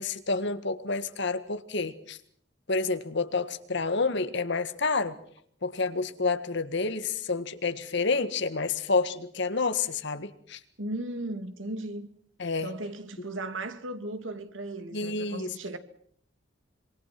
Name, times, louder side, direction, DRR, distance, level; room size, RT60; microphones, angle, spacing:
voice 1, 0.0-2.2 2.7-5.2 5.6-10.6 12.4-12.7 14.9-15.5, left 4 dB, 65° left, 1.7 m, -29 dB
voice 2, 10.8-12.1 12.6-15.8, right 1 dB, 90° right, 2.3 m, -36 dB
26.0 x 24.0 x 6.0 m
head